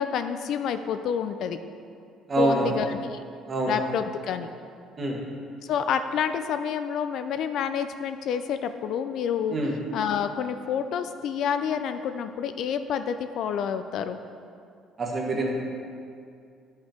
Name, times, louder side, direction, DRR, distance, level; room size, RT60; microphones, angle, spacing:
voice 1, 0.0-1.6 2.4-3.2 3.7-4.5 5.6-9.6 9.9-14.2, left 7 dB, 60° left, 9 dB, 0.4 m, -28 dB
voice 2, 2.3-2.7 3.5-3.7 5.0-5.2 9.5-9.7 15.0-15.5, right 2 dB, 25° right, -1 dB, 1.3 m, -25 dB
10.5 x 5.7 x 4.4 m, 2.4 s
cardioid pair, 145°, 0 cm